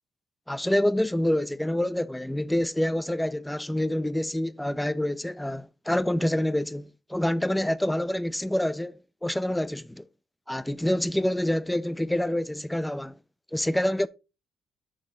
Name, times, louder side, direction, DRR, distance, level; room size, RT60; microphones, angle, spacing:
voice 1, 0.5-10.1 10.5-13.2 13.5-14.1, left 1 dB, 5° left, 0.4 m, -27 dB
6.3 x 4.7 x 3.8 m
cardioid pair, 90°, 0 cm